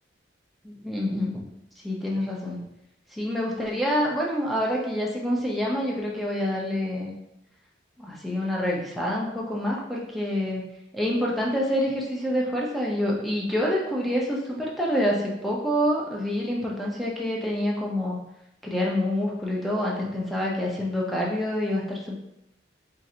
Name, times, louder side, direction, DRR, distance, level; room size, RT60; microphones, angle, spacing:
voice 1, 0.6-1.4 1.8-2.6 3.1-7.1 8.0-10.6 10.9-18.2 18.6-22.2, equal, ahead, -4 dB, 0.6 m, -27 dB
4.5 x 2.5 x 2.8 m, 0.83 s
head